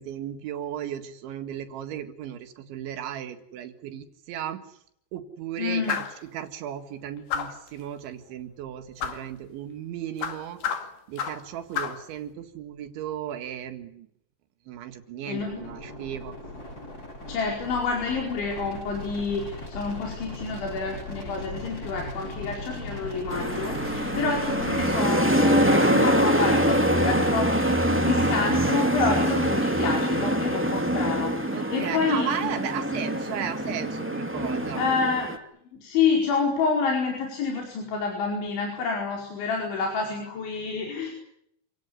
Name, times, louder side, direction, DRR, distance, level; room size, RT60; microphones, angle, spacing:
voice 1, 0.0-4.6 5.1-10.6 11.1-14.1 14.7-16.4 31.5-34.8, right 10 dB, 85° right, 7 dB, 4.3 m, -35 dB
voice 2, 5.6-6.0 15.3-15.7 17.3-32.5 34.8-35.3 35.8-41.1, left 5 dB, 90° left, 1 dB, 7.2 m, -28 dB
sound 1, 5.9-6.2 7.3-7.7 9.0-9.2 10.2-11.5 11.7-12.0, left 8 dB, 60° left, 4.1 m, -30 dB
sound 2, 15.4-25.0, left 1 dB, 20° left, 6.8 m, -38 dB
sound 3, 23.3-35.4, equal, 10° right, 0.7 m, -24 dB
28.0 x 17.5 x 9.7 m, 0.72 s
omnidirectional pair, 5.2 m